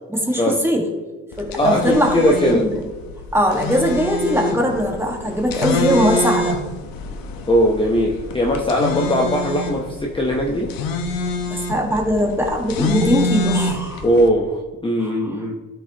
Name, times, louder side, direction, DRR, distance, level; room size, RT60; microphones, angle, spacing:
voice 1, 0.1-0.8 1.4-2.7 3.3-6.5 11.5-14.0 15.0-15.3, equal, 5° right, 1 dB, 1.5 m, -20 dB
sound 1, 1.3-14.3, left 2 dB, 70° left, 1.0 m, -26 dB
voice 2, 1.6-2.6 7.5-10.7 14.0-15.5, equal, 15° left, -1 dB, 0.8 m, -19 dB
12.0 x 5.5 x 2.9 m, 1.3 s
cardioid pair, 105°, 35 cm